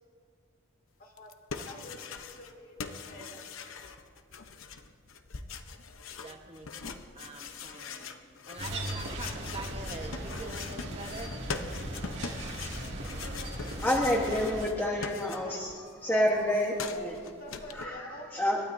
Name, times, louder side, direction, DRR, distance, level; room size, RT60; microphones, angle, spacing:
voice 1, 1.0-3.6 14.0-14.4 15.4-15.7 17.1-18.6, left 1 dB, 45° left, 2 dB, 2.1 m, -48 dB
sound 1, 1.2-2.5 2.8-15.8 16.0-17.9, left 5 dB, 85° left, 0.8 m, -42 dB
voice 2, 6.2-8.1 8.5-11.3, right 2 dB, 30° right, 3 dB, 1.2 m, -44 dB
sound 2, 8.6-14.7, right 1 dB, 55° right, 2.2 m, -38 dB
voice 3, 13.8-15.7 16.0-17.2 17.7-18.6, left 1 dB, 10° left, -2 dB, 1.1 m, -28 dB
27.0 x 12.5 x 2.7 m, 2.3 s
head